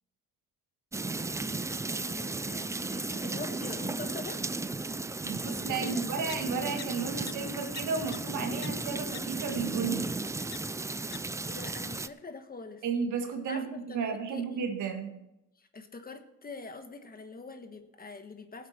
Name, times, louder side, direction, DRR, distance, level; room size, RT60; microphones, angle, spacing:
sound 1, 0.9-12.1, right 3 dB, 10° right, 0.4 m, -35 dB
voice 1, 1.6-4.4 5.8-6.2 11.3-12.8 13.5-14.6 15.6-18.7, left 3 dB, 30° left, 7 dB, 1.4 m, -44 dB
voice 2, 5.2-10.2 12.8-15.2, right 5 dB, 75° right, 4 dB, 1.8 m, -33 dB
sound 2, 6.3-6.4 6.8-6.9 7.3-7.4 7.8-7.9 8.1-8.2 8.6-8.7 9.1-9.2 10.5-10.6 11.1-11.2, left 14 dB, 60° left, 0.4 m, -41 dB
18.0 x 8.1 x 4.3 m, 0.93 s
cardioid pair, 90°, 30 cm